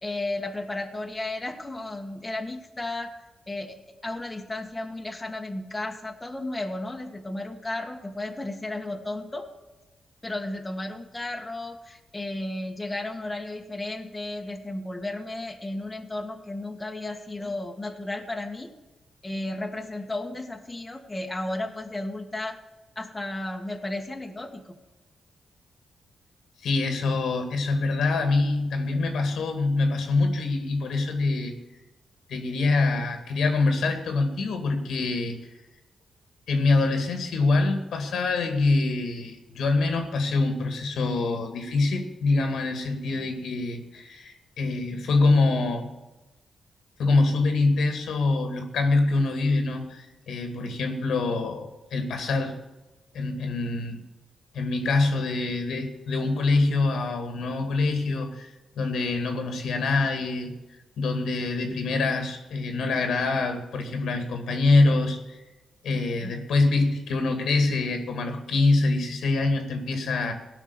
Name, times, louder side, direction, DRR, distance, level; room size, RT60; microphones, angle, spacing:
voice 1, 0.0-3.2 3.5-9.5 10.2-18.7 19.2-22.6 22.9-24.8 66.2-66.3, left 2 dB, 20° left, 3 dB, 1.7 m, -34 dB
voice 2, 26.6-31.5 32.3-35.4 36.5-45.9 47.0-52.5 53.1-54.0 54.5-60.5 61.0-65.4 65.8-70.3, left 3 dB, 85° left, 5 dB, 2.2 m, -25 dB
17.0 x 5.9 x 9.7 m, 1.0 s
cardioid pair, 85°, 0 cm